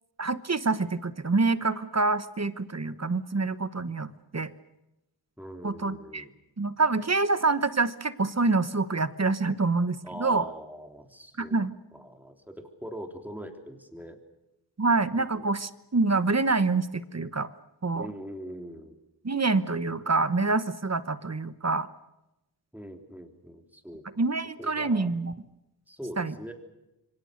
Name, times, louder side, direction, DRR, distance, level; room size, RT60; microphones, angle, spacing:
voice 1, 0.2-4.5 5.6-6.2 6.6-10.5 11.4-11.7 14.8-17.5 17.8-18.1 19.2-21.9 24.2-25.3 26.2-26.3, right 3 dB, 35° right, 14 dB, 1.1 m, -26 dB
voice 2, 5.4-6.3 10.0-11.6 11.9-14.2 15.2-15.5 17.9-19.0 22.7-24.3 24.6-25.1 25.9-26.5, equal, 5° right, 5 dB, 3.4 m, -42 dB
27.0 x 24.0 x 6.6 m, 0.93 s
wide cardioid pair, 60°, 44 cm